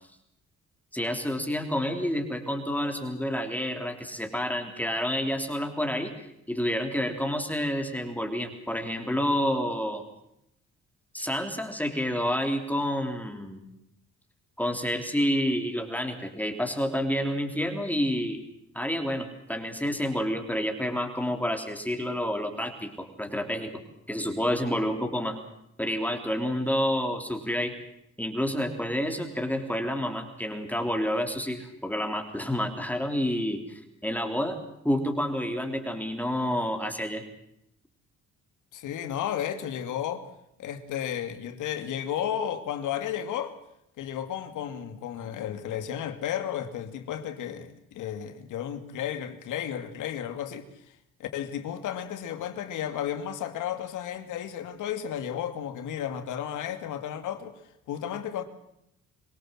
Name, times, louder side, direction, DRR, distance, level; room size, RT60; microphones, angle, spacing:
voice 1, 0.9-10.0 11.1-13.7 14.6-18.4 18.7-23.8 24.1-25.4 25.8-27.7 28.2-34.6 34.8-37.2, equal, 5° left, 3.7 m, -29 dB
voice 2, 38.7-40.2 40.6-43.5 44.0-50.6 51.2-57.5 57.9-58.4, left 10 dB, 85° left, 2.5 m, -33 dB
25.0 x 18.0 x 7.7 m
cardioid pair, 90°, 30 cm